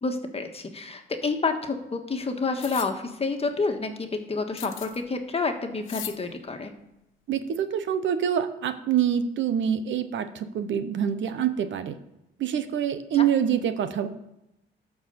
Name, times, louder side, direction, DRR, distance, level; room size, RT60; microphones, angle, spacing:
voice 1, 0.0-6.7, left 3 dB, 30° left, 5 dB, 1.5 m, -29 dB
sound 1, 2.6-2.9 4.6-5.0 5.8-6.2, left 12 dB, 80° left, 0.8 m, -38 dB
voice 2, 7.3-12.0 12.4-14.1, right 9 dB, 70° right, 11 dB, 0.9 m, -26 dB
12.5 x 4.6 x 6.9 m, 0.88 s
cardioid pair, 90°, 20 cm